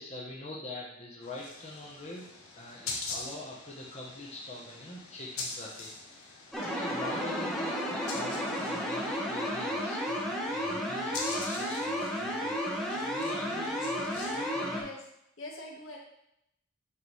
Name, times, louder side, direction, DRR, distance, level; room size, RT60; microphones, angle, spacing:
voice 1, 0.0-2.3 2.5-6.3 6.7-14.8, left 2 dB, 30° left, -4 dB, 0.9 m, -44 dB
sound 1, 1.2-14.4, left 3 dB, 80° left, 1.2 m, -44 dB
sound 2, 6.5-14.8, equal, ahead, 0.8 m, -32 dB
voice 2, 15.4-16.0, left 2 dB, 60° left, -1 dB, 1.3 m, -43 dB
8.4 x 3.9 x 3.2 m, 0.79 s
head